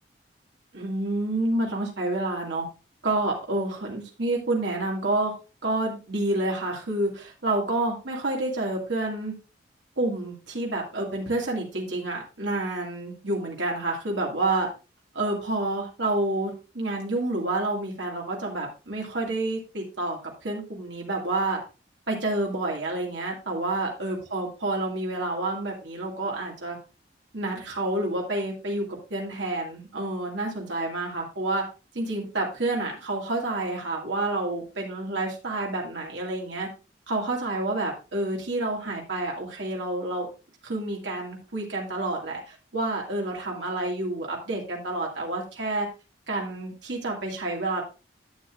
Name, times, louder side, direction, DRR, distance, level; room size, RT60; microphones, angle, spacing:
voice 1, 0.7-2.7 3.0-5.3 5.6-9.3 10.0-14.7 15.1-21.6 22.1-26.8 27.3-28.8 29.1-31.6 31.9-36.7 37.1-40.3 40.6-45.9 46.3-47.8, right 2 dB, 80° right, -1 dB, 2.2 m, -29 dB
11.0 x 8.1 x 2.5 m, 0.31 s
head